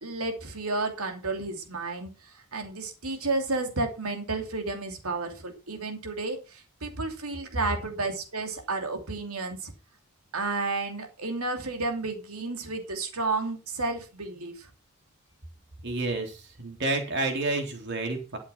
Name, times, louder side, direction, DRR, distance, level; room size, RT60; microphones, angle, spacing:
voice 1, 0.0-2.1 2.5-9.7 10.3-14.7, right 3 dB, 85° right, 5 dB, 2.8 m, -31 dB
voice 2, 15.8-18.4, right 2 dB, 50° right, 3 dB, 3.6 m, -30 dB
12.0 x 7.2 x 5.8 m, 0.32 s
head